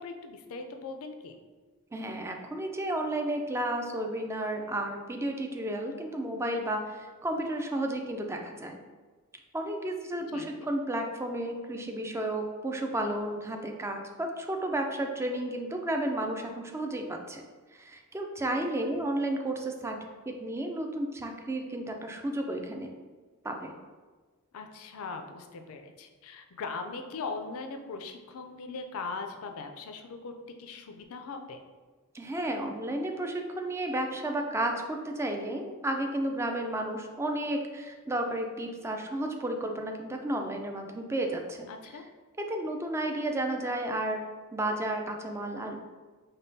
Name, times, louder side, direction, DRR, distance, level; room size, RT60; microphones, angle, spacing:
voice 1, 0.0-1.4 10.3-10.7 18.4-18.6 24.5-30.3 30.6-31.6 41.7-42.0, left 4 dB, 70° left, 6 dB, 0.4 m, -40 dB
voice 2, 1.9-8.8 9.5-17.4 17.7-20.0 20.3-22.9 23.4-23.7 32.1-41.7 42.4-44.2 44.5-45.8, right 1 dB, 10° right, 3 dB, 0.3 m, -32 dB
5.2 x 2.2 x 2.6 m, 1.4 s
head